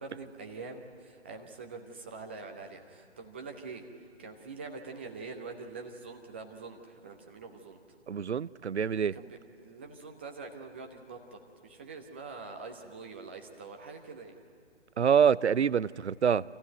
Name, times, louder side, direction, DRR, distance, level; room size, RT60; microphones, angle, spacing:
voice 1, 0.0-3.9 4.2-7.8 9.0-14.4, right 4 dB, 10° right, 3 dB, 0.6 m, -44 dB
voice 2, 8.1-9.1 15.0-16.4, right 7 dB, 70° right, 20 dB, 0.5 m, -26 dB
27.0 x 15.0 x 9.1 m, 2.2 s
figure-of-eight pair, 140°, 35 cm